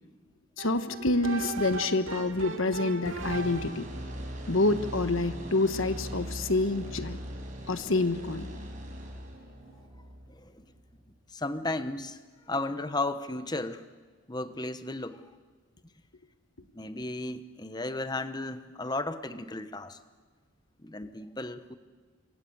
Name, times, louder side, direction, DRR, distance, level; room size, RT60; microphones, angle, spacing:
voice 1, 0.6-3.9 4.5-7.2 7.7-8.5, left 2 dB, 75° left, 10 dB, 1.4 m, -27 dB
sound 1, 0.6-3.9, right 3 dB, 70° right, 2.3 m, -38 dB
sound 2, 3.2-11.2, equal, 35° right, 6.1 m, -40 dB
voice 2, 7.6-7.9 10.3-10.6 11.3-12.2 12.5-13.8 14.3-15.3 16.7-20.0 20.8-21.8, left 2 dB, 20° left, 11 dB, 1.1 m, -34 dB
27.0 x 24.5 x 8.1 m, 1.5 s
head